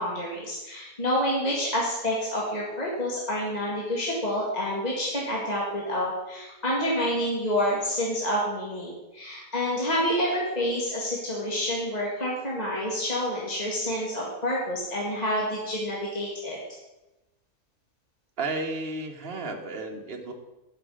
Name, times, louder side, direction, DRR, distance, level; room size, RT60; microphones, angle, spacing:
voice 1, 0.0-16.6, equal, 30° left, -4 dB, 1.9 m, -28 dB
voice 2, 18.4-20.3, right 3 dB, 45° right, 2 dB, 1.4 m, -33 dB
12.5 x 5.9 x 6.2 m, 1.0 s
omnidirectional pair, 1.5 m